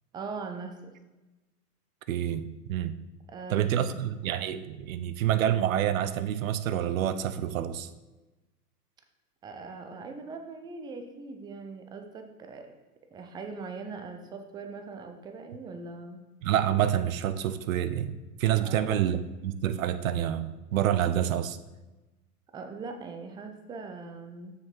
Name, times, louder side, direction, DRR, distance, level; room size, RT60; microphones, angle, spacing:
voice 1, 0.1-0.9 3.3-3.9 9.4-12.7 13.1-16.2 18.6-19.0 22.5-24.5, right 4 dB, 10° right, 5 dB, 0.4 m, -41 dB
voice 2, 2.1-3.0 3.5-7.9 16.4-21.6, right 10 dB, 60° right, 12 dB, 0.7 m, -28 dB
6.6 x 6.6 x 4.5 m, 1.1 s
hypercardioid pair, 105°, 47 cm